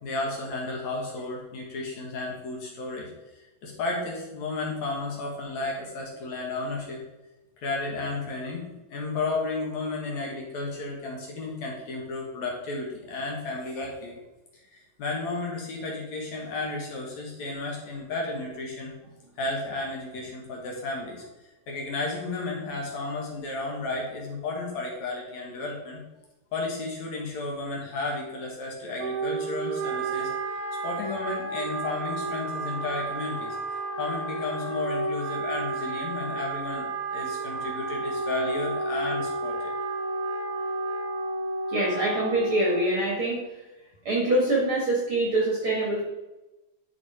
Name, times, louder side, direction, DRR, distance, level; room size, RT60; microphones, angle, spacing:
voice 1, 0.0-7.0 7.6-8.6 8.9-14.2 14.7-18.9 19.4-21.2 21.7-26.0 26.5-30.3 30.8-33.6 34.0-39.6, left 3 dB, 55° left, -2 dB, 2.5 m, -33 dB
Wind instrument woodwind instrument, 29.0-43.0, right 3 dB, 90° right, 3.0 m, -31 dB
voice 2, 41.7-43.4 44.1-46.0, right 1 dB, 50° right, -3 dB, 1.8 m, -24 dB
10.5 x 5.0 x 5.0 m, 1.0 s
omnidirectional pair, 4.3 m